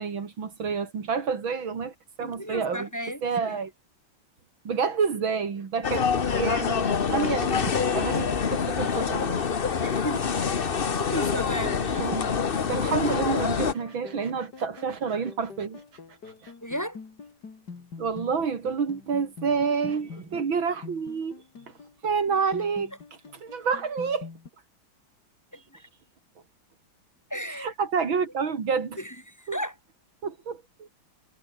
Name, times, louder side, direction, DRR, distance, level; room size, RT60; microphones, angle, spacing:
voice 1, 0.0-2.9 3.2-3.7 4.6-9.4 12.0-12.3 12.6-15.8 16.4-16.5 18.0-21.4 22.0-22.9 23.4-24.3 27.6-29.0 29.5-29.6 30.2-30.6, right 5 dB, 80° right, 3.2 m, -28 dB
voice 2, 2.2-3.6 9.8-10.2 10.5-10.7 11.0-12.1 16.6-17.0 25.5-25.8 27.3-27.7 29.0-29.8, equal, 10° left, 7.1 m, -34 dB
sound 1, 5.8-13.7, left 6 dB, 35° left, 1.0 m, -26 dB
sound 2, 13.6-24.5, left 5 dB, 55° left, 3.3 m, -45 dB
omnidirectional pair, 2.2 m